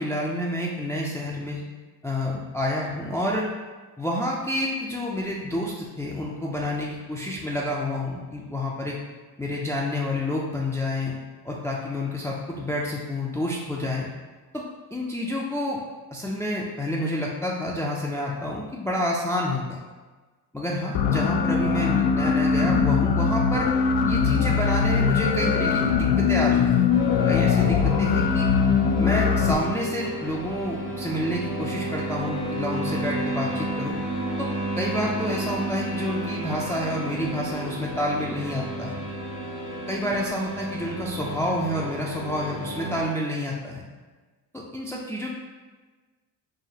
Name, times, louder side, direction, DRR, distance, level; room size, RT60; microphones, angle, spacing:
voice 1, 0.0-1.6 2.0-3.5 4.0-9.0 9.4-11.1 11.4-14.1 14.5-14.6 14.9-15.8 16.1-19.8 20.5-23.7 24.1-26.8 27.3-28.5 29.0-34.0 34.4-34.5 34.7-39.0 39.9-43.8 44.5-45.3, left 1 dB, 5° left, -4 dB, 0.4 m, -29 dB
sound 1, 20.9-29.5, left 6 dB, 60° left, 0.5 m, -21 dB
sound 2, 26.9-43.0, right 1 dB, 90° left, 1.2 m, -32 dB
4.8 x 2.4 x 2.9 m, 1.3 s
supercardioid pair, 75°, 42 cm